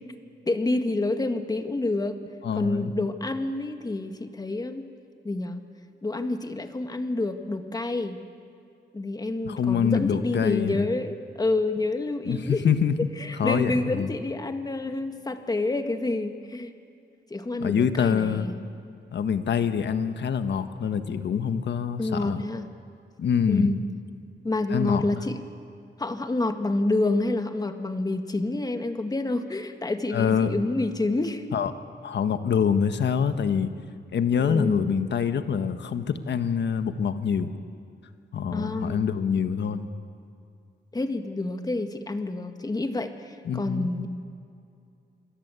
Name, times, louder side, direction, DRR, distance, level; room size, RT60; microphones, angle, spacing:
voice 1, 0.5-2.2 2.5-4.9 5.2-5.6 6.0-8.2 8.9-12.7 13.2-16.7 17.3-18.6 22.0-22.7 23.5-23.8 24.4-25.4 26.0-31.4 34.4-35.0 38.5-39.1 40.9-44.1, left 2 dB, 20° left, 7 dB, 1.6 m, -28 dB
voice 2, 2.4-2.9 9.4-10.9 12.2-13.0 13.4-14.1 17.6-18.5 19.1-22.4 23.2-23.7 24.7-25.2 30.1-30.5 31.5-31.7 32.0-33.7 34.1-37.5 38.3-39.9 43.4-43.9, left 7 dB, 75° left, 9 dB, 1.4 m, -25 dB
27.5 x 23.0 x 8.3 m, 2.5 s
wide cardioid pair, 145°, 19 cm